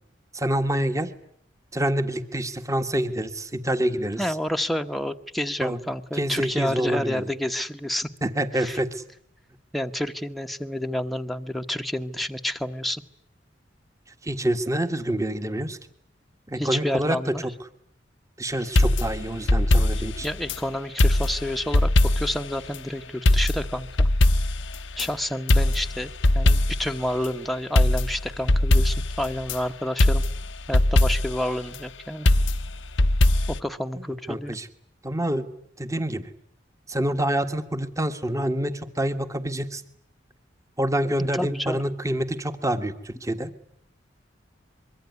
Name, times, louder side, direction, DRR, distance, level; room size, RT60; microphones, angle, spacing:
voice 1, 0.3-1.1 1.7-4.2 5.6-5.8 6.1-7.2 8.2-9.0 14.2-15.8 16.5-17.5 18.4-20.3 33.9-34.7 35.0-35.5 35.8-36.3 36.9-39.8 40.8-43.5, right 1 dB, 15° right, 10 dB, 1.6 m, -27 dB
voice 2, 4.2-8.1 8.5-8.8 9.7-13.0 16.6-17.5 20.2-24.1 25.0-30.2 30.7-32.3 33.5-34.5 41.3-41.8, left 1 dB, ahead, 5 dB, 1.2 m, -29 dB
sound 1, 18.8-20.6 21.0-22.5 22.7-22.8 23.3-25.1 25.5-27.0 27.2-27.3 27.8-29.6 30.0-31.5 32.3-33.6, left 1 dB, 80° left, 1.1 m, -20 dB
25.0 x 23.0 x 9.6 m, 0.67 s
head